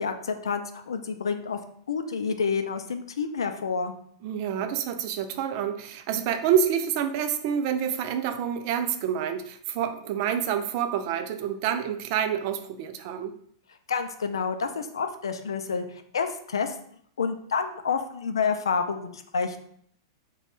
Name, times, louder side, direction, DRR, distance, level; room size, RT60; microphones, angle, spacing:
voice 1, 0.0-1.6 1.9-3.9 13.9-16.7 17.2-19.6, left 5 dB, 90° left, 8 dB, 0.3 m, -29 dB
voice 2, 4.2-13.3, right 8 dB, 50° right, 7 dB, 0.3 m, -27 dB
2.5 x 2.2 x 3.4 m, 0.63 s
hypercardioid pair, 120°, 2 cm